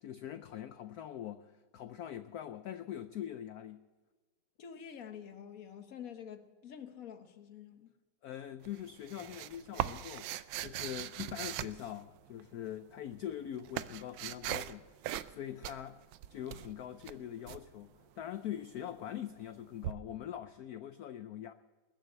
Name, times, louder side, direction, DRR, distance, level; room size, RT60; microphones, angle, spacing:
voice 1, 0.0-3.8 8.2-10.4 10.6-14.9 15.3-16.0 16.3-21.5, left 11 dB, 70° left, 0.9 m, -43 dB
voice 2, 4.6-7.9, left 8 dB, 50° left, 1.3 m, -48 dB
sound 1, 8.6-12.5 13.2-14.8 15.0-15.4 15.6-17.6 19.8-19.9, right 13 dB, 80° right, 1.4 m, -40 dB
20.5 x 7.9 x 8.1 m
omnidirectional pair, 2.2 m